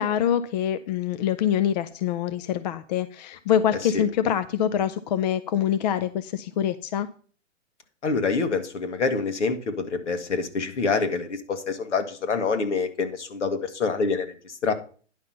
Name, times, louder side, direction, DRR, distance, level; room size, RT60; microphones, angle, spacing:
voice 1, 0.0-7.1, left 9 dB, 35° left, 12 dB, 0.6 m, -25 dB
voice 2, 8.0-14.7, left 4 dB, 70° left, 7 dB, 2.0 m, -26 dB
10.5 x 5.8 x 5.6 m, 0.41 s
hypercardioid pair, 130°, 37 cm